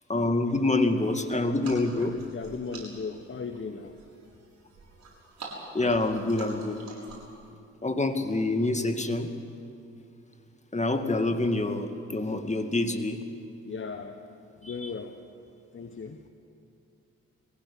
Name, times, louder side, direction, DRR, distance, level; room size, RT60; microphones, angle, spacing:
voice 1, 0.1-2.1 5.7-7.1 7.8-9.3 10.7-13.2 14.6-14.9, left 2 dB, 20° left, 7 dB, 2.4 m, -27 dB
sound 1, 1.4-7.4, right 3 dB, 50° right, 6.7 m, -47 dB
voice 2, 2.3-3.9 13.6-14.2 14.6-15.2 15.7-16.2, left 5 dB, 35° left, 7 dB, 1.4 m, -37 dB
22.5 x 16.0 x 9.8 m, 2.7 s
hypercardioid pair, 45°, 35 cm